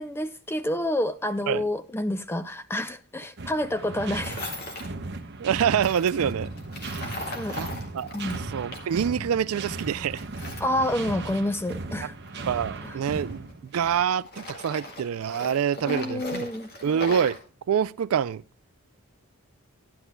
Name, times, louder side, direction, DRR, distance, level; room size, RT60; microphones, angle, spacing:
voice 1, 0.0-4.5 7.3-7.6 8.1-8.4 10.6-12.1 12.8-12.9 15.9-16.7, left 1 dB, 10° left, 0.5 m, -28 dB
sound 1, 3.4-14.1, right 3 dB, 50° right, 0.9 m, -37 dB
Tools, 4.2-4.9 5.7-9.0 9.3-11.6 12.2-13.9 14.2-17.4, left 1 dB, 45° left, 2.0 m, -39 dB
voice 2, 5.4-6.5 7.6-7.7 7.9-8.1 8.5-10.2 12.0-12.1 12.5-16.5 16.8-17.4 17.7-18.4, right 8 dB, 75° right, 0.4 m, -26 dB
12.5 x 11.0 x 2.2 m
head